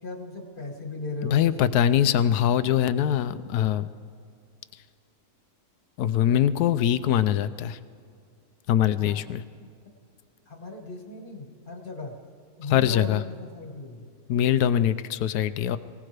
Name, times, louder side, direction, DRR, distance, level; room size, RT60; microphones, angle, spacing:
voice 1, 0.0-1.7 9.0-9.2 10.5-12.2 12.6-14.1, left 2 dB, 35° left, 3 dB, 1.6 m, -37 dB
voice 2, 1.3-3.8 6.0-7.8 8.7-9.4 12.7-13.2 14.3-15.8, left 10 dB, 80° left, 13 dB, 1.1 m, -22 dB
23.5 x 17.0 x 3.3 m, 2.3 s
omnidirectional pair, 1.7 m